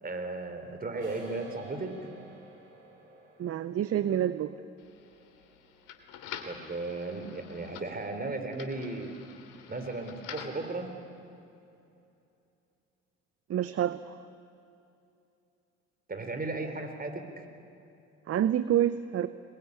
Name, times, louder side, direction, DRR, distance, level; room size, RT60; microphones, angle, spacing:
voice 1, 0.0-1.9 6.4-9.1 9.7-10.9 16.1-17.4, right 2 dB, 25° right, 6 dB, 3.8 m, -36 dB
sound 1, 0.9-6.4, right 2 dB, 85° right, 6.4 m, -48 dB
voice 2, 3.4-4.5 13.5-14.2 18.3-19.3, right 11 dB, 45° right, 14 dB, 0.8 m, -27 dB
sound 2, 4.8-10.7, left 8 dB, 65° left, 2.6 m, -47 dB
21.5 x 21.0 x 9.7 m, 2.7 s
hypercardioid pair, 55°, 34 cm